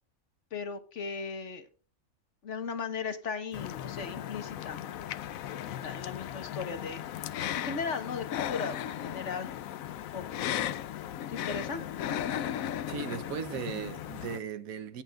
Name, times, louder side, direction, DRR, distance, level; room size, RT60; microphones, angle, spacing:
voice 1, 0.5-1.7 2.4-4.8 5.7-7.3 7.5-9.5 10.1-10.2 11.3-11.8, left 5 dB, 60° left, 1.5 m, -37 dB
sound 1, 3.5-14.4, left 11 dB, 80° left, 1.1 m, -36 dB
voice 2, 12.9-15.0, right 7 dB, 90° right, 1.3 m, -37 dB
18.0 x 6.1 x 2.4 m
omnidirectional pair, 1.4 m